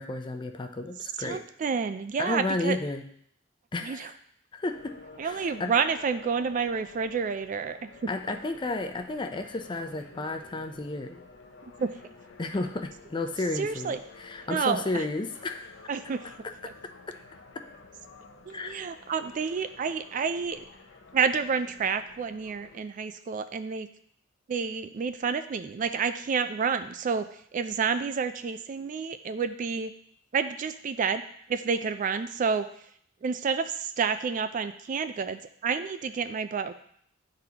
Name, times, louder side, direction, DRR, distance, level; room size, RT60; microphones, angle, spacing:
voice 1, 0.0-1.4 2.2-3.0 3.7-4.1 4.5-5.0 5.2-5.7 8.1-11.2 12.4-15.8 18.5-18.8, left 2 dB, 25° left, 6 dB, 0.4 m, -32 dB
voice 2, 1.2-2.8 3.8-4.1 5.2-7.8 8.3-8.4 11.8-11.9 13.6-14.0 14.5-15.0 15.9-16.3 18.5-20.7 21.1-23.9 24.5-29.9 30.3-31.2 31.5-32.7 33.2-36.7, right 5 dB, 40° right, 10 dB, 0.3 m, -29 dB
sound 1, 4.7-22.8, left 4 dB, 65° left, 0.7 m, -51 dB
10.5 x 4.0 x 2.8 m, 0.66 s
head